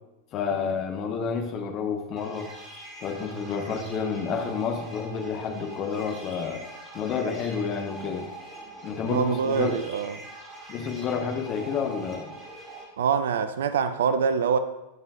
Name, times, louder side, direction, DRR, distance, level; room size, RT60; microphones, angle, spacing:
voice 1, 0.3-2.5 3.0-6.6 6.9-8.3 8.8-9.8 10.7-12.3, left 6 dB, 35° left, 1.0 m, -30 dB
sound 1, 2.2-12.8, right 1 dB, 25° right, 2.1 m, -43 dB
voice 2, 9.0-10.2 13.0-14.6, right 6 dB, 60° right, 0.5 m, -25 dB
16.5 x 5.6 x 2.4 m
figure-of-eight pair, 90°, 0 cm